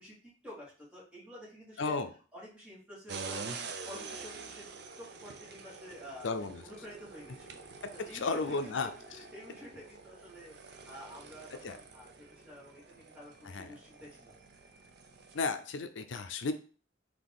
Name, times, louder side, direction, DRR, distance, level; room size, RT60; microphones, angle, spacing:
voice 1, 0.0-2.0 2.3-3.6 3.8-4.6 5.0-7.6 7.9-14.3, equal, 5° right, -8 dB, 2.0 m, -50 dB
voice 2, 1.8-2.1 6.2-6.6 8.0-8.9 11.6-11.8 13.4-13.7 15.3-16.5, left 4 dB, 75° left, 9 dB, 0.5 m, -33 dB
sound 1, 3.1-15.5, right 4 dB, 60° right, 0.5 m, -47 dB
4.1 x 2.8 x 3.6 m, 0.39 s
head